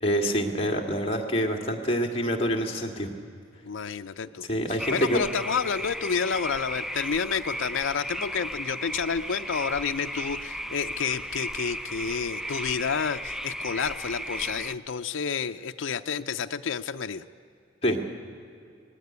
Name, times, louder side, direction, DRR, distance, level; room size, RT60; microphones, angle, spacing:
voice 1, 0.0-3.1 4.5-5.2 17.8-18.1, equal, 30° left, 3 dB, 2.0 m, -26 dB
voice 2, 3.6-17.2, left 6 dB, 80° left, 7 dB, 0.6 m, -30 dB
sound 1, 4.8-14.7, equal, ahead, 0.4 m, -35 dB
19.0 x 16.5 x 9.5 m, 2.5 s
head